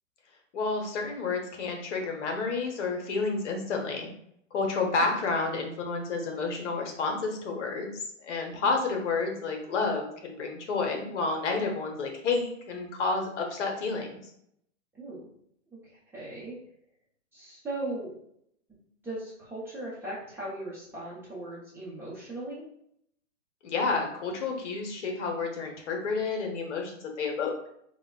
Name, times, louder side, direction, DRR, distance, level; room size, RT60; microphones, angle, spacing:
voice 1, 0.5-4.1 4.5-14.2 23.6-26.9 27.2-27.5, left 4 dB, 65° left, 2 dB, 0.9 m, -30 dB
voice 2, 14.9-15.3 16.1-16.6 17.3-18.1 18.7-18.8 19.0-22.6, right 1 dB, 5° right, -10 dB, 0.8 m, -38 dB
4.7 x 2.2 x 2.3 m, 0.72 s
hypercardioid pair, 155°, 38 cm